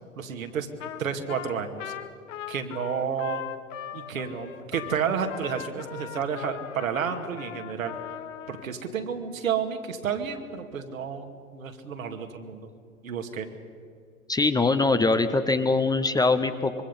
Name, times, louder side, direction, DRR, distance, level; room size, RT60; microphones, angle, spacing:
voice 1, 0.2-0.7 1.0-1.9 2.5-3.4 3.9-7.9 8.5-12.7 13.0-13.5, right 7 dB, 70° right, 5 dB, 2.4 m, -31 dB
Trumpet, 0.8-1.0 1.3-8.7, left 11 dB, 60° left, 1.4 m, -39 dB
voice 2, 14.3-16.8, left 3 dB, 10° left, 9 dB, 0.8 m, -23 dB
25.0 x 23.5 x 5.5 m, 2.2 s
figure-of-eight pair, 95°, 42 cm